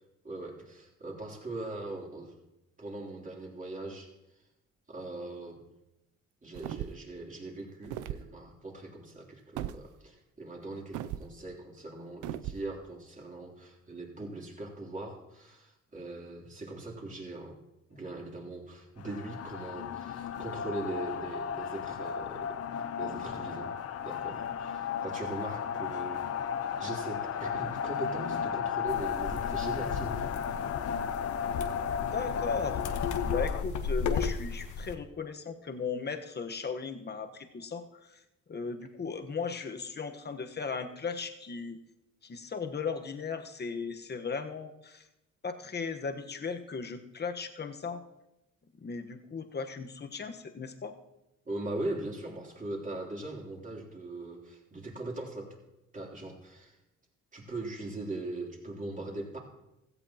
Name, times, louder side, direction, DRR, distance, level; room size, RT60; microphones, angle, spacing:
voice 1, 0.2-2.3 2.8-4.1 4.9-5.6 6.4-17.6 17.9-22.6 23.0-23.7 24.0-26.3 26.8-30.2 51.4-55.6 55.9-56.8 57.3-59.4, right 2 dB, 25° right, -1 dB, 3.3 m, -40 dB
sound 1, 6.5-7.1 7.8-8.3 9.6-9.8 10.9-11.3 12.2-12.6, right 12 dB, 85° right, 0.6 m, -37 dB
sound 2, 19.0-33.6, left 8 dB, 55° left, 0.7 m, -34 dB
sound 3, 28.9-34.9, left 6 dB, 70° left, 1.2 m, -35 dB
voice 2, 32.0-32.8 33.2-38.2 38.5-41.8 42.2-45.0 45.4-48.0 48.8-50.9, left 5 dB, 35° left, 6 dB, 1.3 m, -37 dB
16.5 x 14.5 x 2.9 m, 0.91 s
cardioid pair, 90°, 30 cm